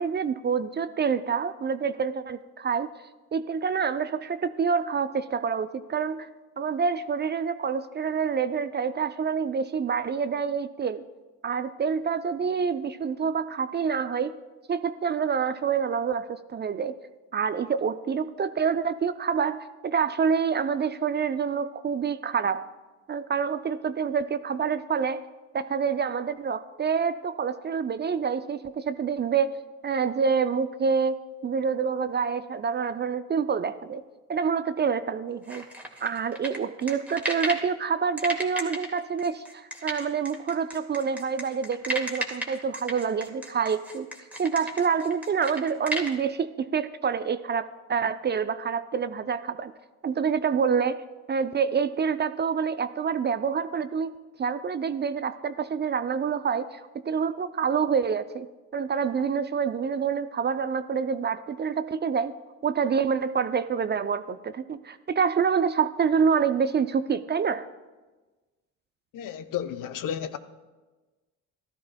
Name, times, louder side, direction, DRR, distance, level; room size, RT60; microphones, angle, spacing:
voice 1, 0.0-2.9 3.3-6.3 6.6-11.0 11.4-14.3 14.7-17.0 17.3-22.7 23.1-25.2 25.5-29.6 29.8-34.0 34.3-35.6 36.0-44.1 44.4-49.7 50.0-51.0 51.3-54.1 54.4-58.5 58.7-62.3 62.6-67.7, right 6 dB, 30° right, 0.4 m, -27 dB
sound 1, 35.5-37.7 38.2-46.1, right 1 dB, 5° right, 1.9 m, -33 dB
voice 2, 69.1-70.4, left 9 dB, 55° left, 0.7 m, -32 dB
14.0 x 12.5 x 2.2 m
hypercardioid pair, 60°, 38 cm